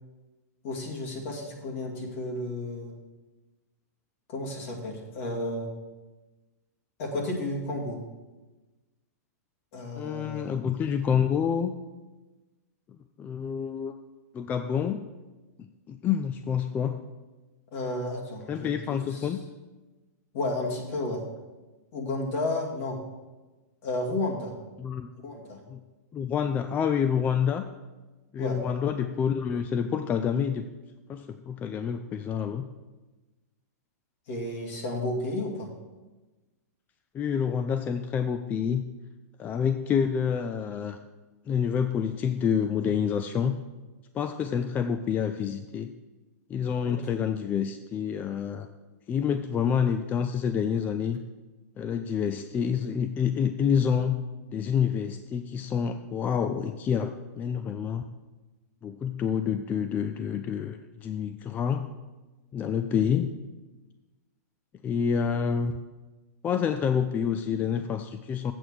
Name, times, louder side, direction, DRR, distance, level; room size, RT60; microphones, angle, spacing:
voice 1, 0.6-2.9 4.3-5.7 7.0-8.0 9.7-10.5 17.7-19.3 20.3-21.2 21.9-23.0 23.8-24.5 25.1-25.6 28.4-28.6 34.3-35.7 46.8-47.0, left 2 dB, 55° left, 0 dB, 2.4 m, -32 dB
voice 2, 10.0-11.7 13.2-13.9 14.3-15.0 15.6-17.0 18.5-19.4 24.8-25.1 25.7-25.8 26.1-27.7 28.3-30.6 31.1-32.6 37.1-38.8 39.4-41.0 41.5-43.5 44.1-45.9 46.5-48.7 49.1-51.2 51.8-54.2 54.5-58.1 58.8-61.9 62.5-63.3 64.8-65.8 66.4-68.5, left 7 dB, 20° left, 8 dB, 0.4 m, -28 dB
7.8 x 6.9 x 6.4 m, 1.2 s
hypercardioid pair, 135°, 9 cm